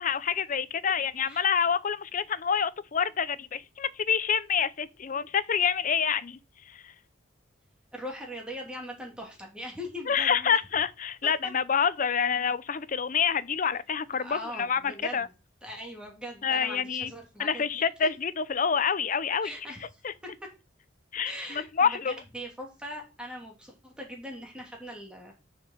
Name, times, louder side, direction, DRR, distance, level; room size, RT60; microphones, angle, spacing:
voice 1, 0.0-6.4 6.6-6.9 10.1-15.3 16.4-17.1 17.4-19.5 20.0-20.1 21.1-22.1, left 7 dB, 40° left, 0.5 m, -27 dB
voice 2, 7.9-10.6 11.2-11.3 14.2-15.3 15.6-17.9 19.4-19.8 20.2-20.5 21.2-25.3, equal, 5° right, 2.8 m, -41 dB
6.7 x 5.6 x 6.5 m
head